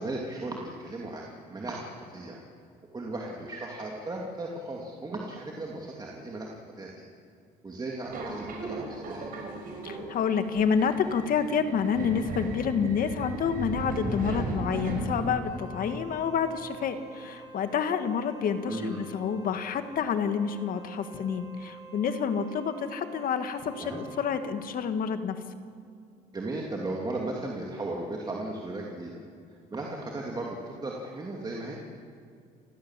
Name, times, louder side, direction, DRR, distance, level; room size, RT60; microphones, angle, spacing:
voice 1, 0.0-2.4 2.9-7.0 7.6-9.3 18.7-19.1 23.8-24.0 26.3-29.1 29.5-31.8, right 2 dB, 25° right, -1 dB, 2.8 m, -36 dB
Subway metro underground, 8.0-15.6, right 3 dB, 55° right, 6.1 m, -37 dB
voice 2, 9.8-25.4, left 6 dB, 55° left, 9 dB, 1.8 m, -28 dB
sound 1, 14.0-17.5, equal, 5° left, 1.1 m, -41 dB
Wind instrument woodwind instrument, 15.4-24.7, right 4 dB, 75° left, 6.8 m, -48 dB
29.0 x 16.0 x 7.6 m, 2.4 s
cardioid pair, 110°, 17 cm